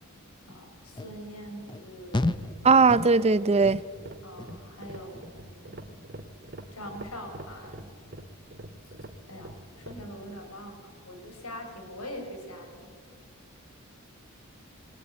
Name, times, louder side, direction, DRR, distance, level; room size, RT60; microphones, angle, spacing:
voice 1, 0.5-2.4 4.2-5.8 6.7-7.9 9.3-12.9, equal, 85° left, 4.4 m, -43 dB
sound 1, 1.0-1.2 1.7-1.8 2.1-2.6 2.9-3.3 3.6-4.0 4.4-4.8 5.1-5.5 5.9-6.0, left 2 dB, 20° left, 0.8 m, -32 dB
voice 2, 2.6-3.8, right 4 dB, 30° right, 0.6 m, -19 dB
sound 2, 3.6-10.1, right 1 dB, 50° right, 2.0 m, -45 dB
22.0 x 21.0 x 9.0 m
head